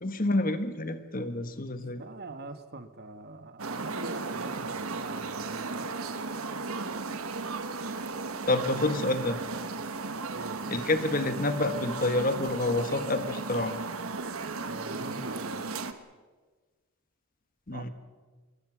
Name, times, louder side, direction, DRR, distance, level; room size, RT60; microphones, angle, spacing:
voice 1, 0.0-2.0 8.5-9.4 10.7-13.7 17.7-17.9, left 2 dB, 40° left, 9 dB, 1.4 m, -28 dB
voice 2, 1.9-5.9 10.1-10.6 14.6-15.7 17.7-17.9, right 2 dB, 45° right, 9 dB, 1.3 m, -43 dB
sound 1, 3.6-15.9, right 4 dB, 70° right, 1.3 m, -35 dB
27.0 x 21.0 x 6.2 m, 1.4 s
head